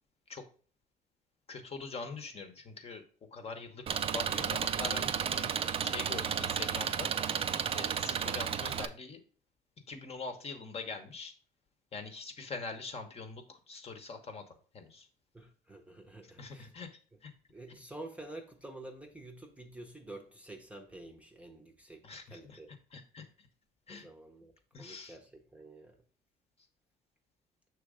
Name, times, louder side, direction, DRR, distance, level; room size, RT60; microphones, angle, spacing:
voice 1, 1.5-3.0 3.3-5.5 5.8-9.2 9.9-11.3 11.9-14.4 14.7-15.1 16.2-16.9 17.2-17.3 22.0-22.6 22.9-23.5 23.9-24.1 24.7-25.2, left 4 dB, 35° left, 0.9 m, -43 dB
Engine, 3.9-8.9, right 7 dB, 35° right, 0.4 m, -32 dB
voice 2, 15.3-16.7 17.5-22.7 23.9-26.0, right 2 dB, 5° right, 0.7 m, -49 dB
6.2 x 3.2 x 4.8 m
cardioid pair, 110°, 17 cm